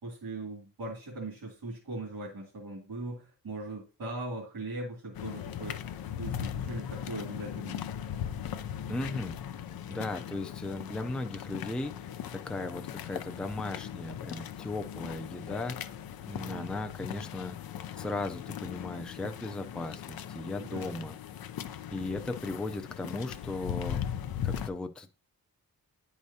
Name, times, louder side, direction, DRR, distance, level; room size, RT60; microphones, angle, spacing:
voice 1, 0.0-5.8 6.2-7.8 16.4-16.7 20.6-21.0, right 2 dB, 90° right, 2.2 m, -40 dB
sound 1, 5.1-24.7, left 9 dB, 80° left, 0.5 m, -39 dB
voice 2, 8.9-9.3 9.9-15.9 16.3-17.7 18.0-21.1 21.9-24.0 24.4-25.3, left 2 dB, 5° left, 0.4 m, -37 dB
10.5 x 4.9 x 2.7 m
wide cardioid pair, 165°, 35 cm